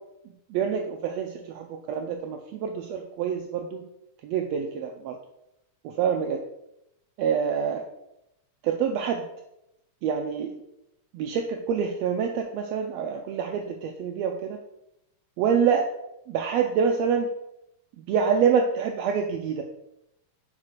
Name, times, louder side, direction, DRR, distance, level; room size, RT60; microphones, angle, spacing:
voice 1, 0.5-3.9 4.2-5.2 5.8-6.4 7.2-7.9 8.6-9.2 10.0-10.6 11.1-14.6 15.4-15.9 16.3-17.3 18.1-19.6, right 7 dB, 90° right, 4 dB, 1.5 m, -26 dB
6.3 x 4.8 x 4.4 m, 0.85 s
omnidirectional pair, 3.6 m